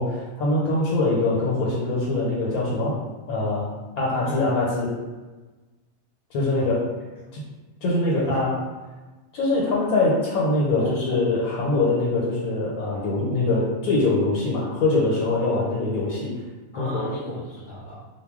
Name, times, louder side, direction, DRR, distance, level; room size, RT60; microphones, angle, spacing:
voice 1, 0.0-3.0 3.3-4.9 6.3-6.9 7.3-7.4 7.8-8.6 9.3-16.4 16.8-17.0, left 2 dB, 85° left, -4 dB, 1.1 m, -23 dB
voice 2, 8.1-8.5 10.8-11.2 15.5-15.7 16.7-18.0, left 1 dB, 60° left, -7 dB, 0.5 m, -36 dB
2.3 x 2.2 x 3.5 m, 1.2 s
omnidirectional pair, 1.5 m